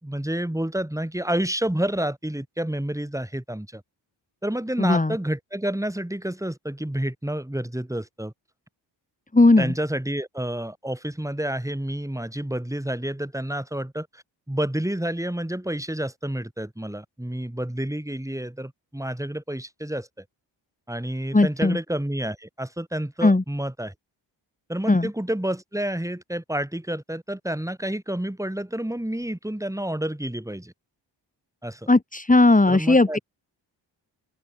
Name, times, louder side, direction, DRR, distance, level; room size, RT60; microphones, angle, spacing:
voice 1, 0.0-3.8 4.4-8.3 9.6-20.2 20.9-23.9 24.7-30.7 31.6-31.9 32.7-33.2, right 1 dB, 5° right, 5.7 m, -29 dB
voice 2, 4.8-5.1 9.3-9.7 21.3-21.8 23.2-23.4 24.9-25.1 31.9-33.2, left 2 dB, 20° left, 3.0 m, -17 dB
open air
cardioid pair, 65°, 44 cm